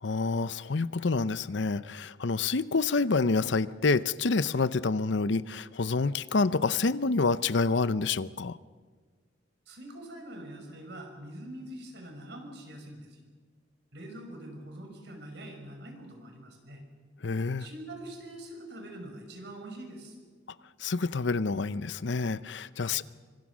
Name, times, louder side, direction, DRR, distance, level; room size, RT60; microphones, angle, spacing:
voice 1, 0.0-8.6 17.2-17.7 20.8-23.0, left 4 dB, 70° left, 16 dB, 0.7 m, -28 dB
voice 2, 9.7-13.2 13.9-16.8 17.6-20.2 22.8-23.0, right 1 dB, 60° right, 4 dB, 5.8 m, -44 dB
26.0 x 25.5 x 6.3 m, 1.5 s
head